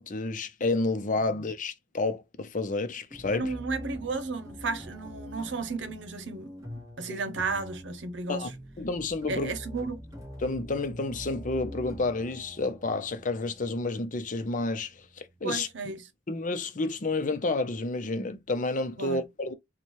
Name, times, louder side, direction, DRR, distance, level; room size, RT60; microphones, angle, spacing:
voice 1, 0.0-3.5 7.1-7.2 8.3-8.5 8.8-9.5 10.4-15.0 15.4-15.7 16.3-19.5, left 3 dB, 45° left, 0.7 m, -30 dB
sound 1, 3.1-15.9, equal, 15° right, 2.0 m, -45 dB
voice 2, 3.2-6.5 7.0-8.5 9.3-10.0 15.4-16.1 19.0-19.2, right 4 dB, 85° right, 0.8 m, -33 dB
4.4 x 2.3 x 3.1 m
head